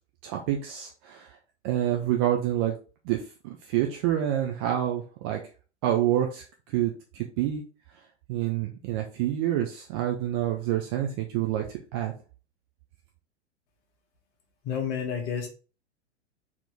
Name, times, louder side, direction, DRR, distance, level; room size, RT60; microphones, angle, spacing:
voice 1, 0.2-1.4 1.6-2.8 3.0-5.4 5.8-7.6 8.3-12.1, right 12 dB, 25° right, 2 dB, 0.3 m, -28 dB
voice 2, 14.6-15.5, left 7 dB, 40° left, 2 dB, 1.3 m, -30 dB
4.2 x 2.9 x 3.3 m, 0.35 s
figure-of-eight pair, 100°, 35 cm